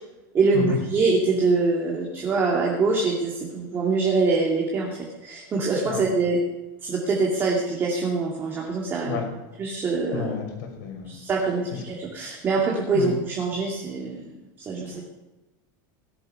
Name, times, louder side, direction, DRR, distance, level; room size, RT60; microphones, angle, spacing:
voice 1, 0.3-6.4 6.8-9.2 9.6-10.3 11.1-14.3 14.6-15.1, right 3 dB, 20° right, -2 dB, 2.3 m, -24 dB
voice 2, 10.1-11.2 12.9-13.1 14.8-15.1, left 6 dB, 60° left, 3 dB, 5.9 m, -31 dB
18.0 x 12.5 x 5.6 m, 1.1 s
supercardioid pair, 170°, 11 cm